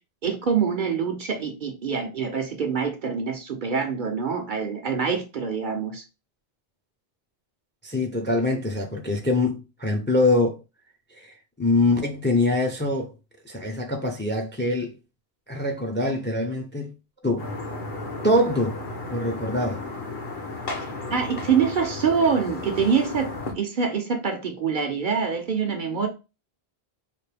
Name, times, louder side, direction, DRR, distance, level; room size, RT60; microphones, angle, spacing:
voice 1, 0.2-6.0 21.1-26.1, right 6 dB, 50° right, 0.8 m, -25 dB
voice 2, 7.8-10.6 11.2-11.3 11.6-13.1 13.5-14.9 15.5-16.9 17.2-17.5 18.2-18.8 19.1-19.8, left 2 dB, 15° left, 0.6 m, -24 dB
sound 1, 17.4-23.5, left 2 dB, 50° left, 1.1 m, -34 dB
5.0 x 2.6 x 3.4 m
omnidirectional pair, 1.1 m